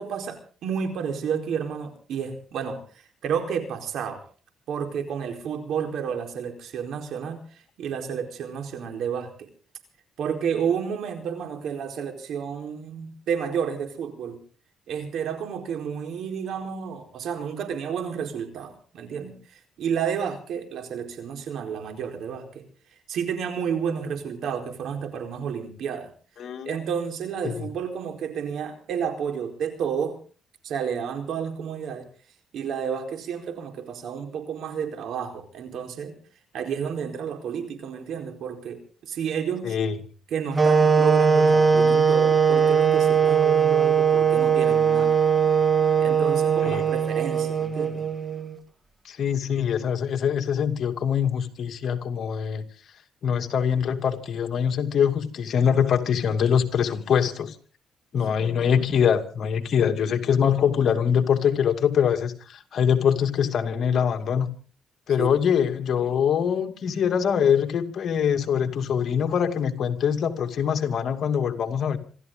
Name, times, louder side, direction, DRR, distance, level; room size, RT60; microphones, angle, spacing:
voice 1, 0.0-2.8 3.2-4.2 4.7-7.4 7.8-9.3 10.2-14.4 14.9-19.3 19.8-22.6 23.1-26.1 26.6-30.2 30.6-32.1 32.5-36.2 36.5-39.8 40.3-45.2 46.0-48.0 65.2-65.3, right 7 dB, 75° right, 5 dB, 4.4 m, -31 dB
voice 2, 26.4-26.8 27.4-27.6 39.6-40.0 46.6-46.8 49.0-52.6 53.2-57.5 58.1-64.5 65.1-72.0, left 7 dB, 60° left, 5 dB, 2.5 m, -23 dB
sound 1, 40.5-48.6, right 6 dB, 25° right, 2.6 m, -20 dB
27.0 x 13.5 x 3.9 m, 0.40 s
cardioid pair, 90°, 0 cm